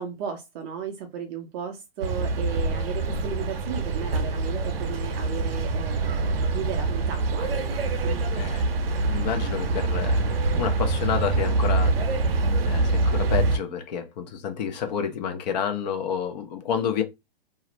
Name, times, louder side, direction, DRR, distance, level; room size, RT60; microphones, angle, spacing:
voice 1, 0.0-8.2, right 7 dB, 25° right, 0.4 m, -35 dB
sound 1, 2.0-13.6, right 3 dB, 75° right, 0.6 m, -25 dB
voice 2, 8.3-17.0, left 7 dB, 45° left, 0.6 m, -30 dB
2.4 x 2.0 x 2.9 m
hypercardioid pair, 125°, 30 cm